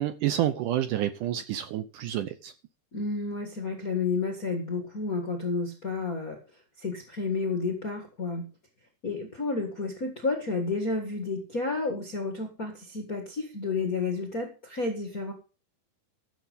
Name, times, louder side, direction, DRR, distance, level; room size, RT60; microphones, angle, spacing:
voice 1, 0.0-2.5, right 12 dB, 75° right, 2.0 m, -29 dB
voice 2, 2.9-6.4 6.8-8.5 9.0-15.3, left 3 dB, 75° left, 0.8 m, -31 dB
14.5 x 7.4 x 5.3 m
omnidirectional pair, 4.5 m